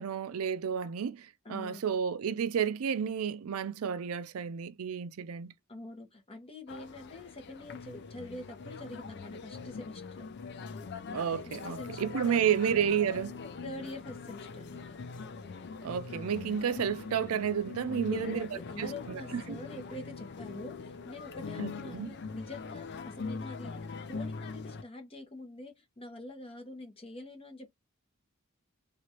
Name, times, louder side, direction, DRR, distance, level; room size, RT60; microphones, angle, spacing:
voice 1, 0.0-5.5 11.1-13.4 15.8-18.5 18.8-19.6 21.6-22.1, right 8 dB, 90° right, 0.4 m, -31 dB
voice 2, 1.4-1.8 5.7-10.3 11.5-12.4 13.6-14.9 18.0-27.7, left 2 dB, 25° left, 1.0 m, -45 dB
sound 1, 6.7-24.8, left 4 dB, 55° left, 0.4 m, -42 dB
3.0 x 2.5 x 2.8 m
head